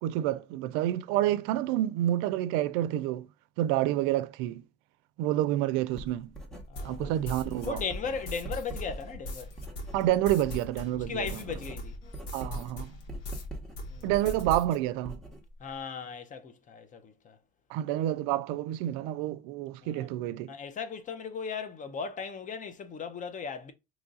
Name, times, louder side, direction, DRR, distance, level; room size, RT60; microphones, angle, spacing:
voice 1, 0.0-3.3 3.6-4.6 5.2-6.3 6.8-7.8 9.9-11.3 12.3-12.9 14.0-15.2 17.7-20.5, right 13 dB, 75° right, 0.5 m, -28 dB
Writing, 5.9-10.9 11.2-15.8, right 1 dB, ahead, 0.8 m, -44 dB
voice 2, 6.7-7.1 7.6-9.5 11.0-12.0 13.9-14.1 15.6-17.4 19.8-20.1 20.5-23.7, left 6 dB, 25° left, 0.5 m, -37 dB
sound 1, 6.8-13.5 13.8-14.8, left 1 dB, 85° left, 1.4 m, -40 dB
3.1 x 2.4 x 3.8 m
cardioid pair, 125°, 31 cm